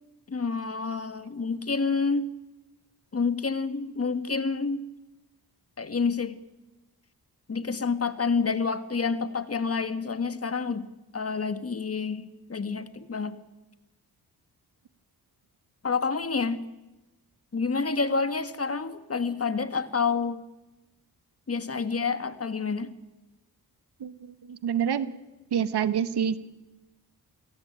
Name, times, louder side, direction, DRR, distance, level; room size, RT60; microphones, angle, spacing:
voice 1, 0.3-2.3 3.1-4.8 5.8-6.3 7.5-10.9 11.1-13.4 15.8-16.6 17.5-20.4 21.5-22.9, left 4 dB, 35° left, 11 dB, 1.6 m, -28 dB
voice 2, 24.0-25.2 25.5-26.4, right 8 dB, 85° right, 14 dB, 1.3 m, -27 dB
29.5 x 17.5 x 9.0 m, 1.1 s
cardioid pair, 75°, 39 cm